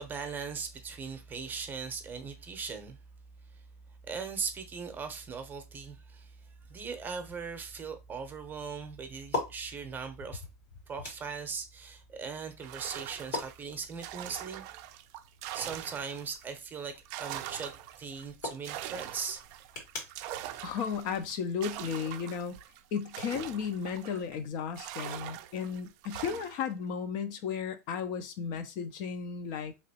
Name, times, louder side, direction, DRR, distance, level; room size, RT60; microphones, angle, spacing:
voice 1, 0.0-3.0 4.1-10.4 10.9-14.7 15.5-19.4, right 5 dB, 20° right, 0.7 m, -39 dB
sound 1, 6.6-21.8, left 3 dB, 75° left, 1.7 m, -45 dB
sound 2, 12.6-16.5 16.8-24.4 24.8-26.7, right 12 dB, 50° right, 0.4 m, -43 dB
voice 2, 20.6-22.6 22.9-29.7, left 7 dB, 45° left, 0.5 m, -34 dB
3.0 x 2.9 x 2.8 m
hypercardioid pair, 115°, 9 cm